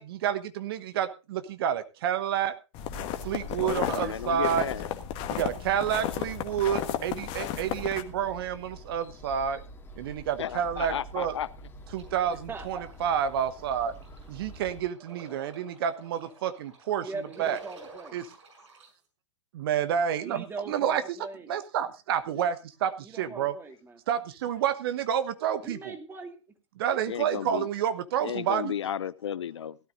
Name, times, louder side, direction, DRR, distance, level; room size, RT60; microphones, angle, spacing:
voice 1, 0.0-2.5 3.2-4.7 5.3-9.6 10.0-11.3 11.9-13.9 14.3-17.6 18.1-18.3 19.5-21.2 21.5-23.6 24.1-25.9 26.8-28.7, right 9 dB, 50° right, 1.2 m, -29 dB
sound 1, 2.7-8.0, left 10 dB, 35° left, 1.4 m, -33 dB
voice 2, 3.6-4.9 10.4-11.5 27.1-27.7 28.2-29.8, left 9 dB, 65° left, 0.6 m, -33 dB
sound 2, 7.4-14.8, right 1 dB, 15° left, 2.1 m, -47 dB
sound 3, 11.9-18.9, right 2 dB, 70° right, 6.2 m, -51 dB
voice 3, 12.3-12.8 17.0-18.2 20.2-21.6 23.0-24.0 25.6-26.4, right 3 dB, 15° right, 2.0 m, -40 dB
17.0 x 12.5 x 2.6 m
figure-of-eight pair, 110°, 16 cm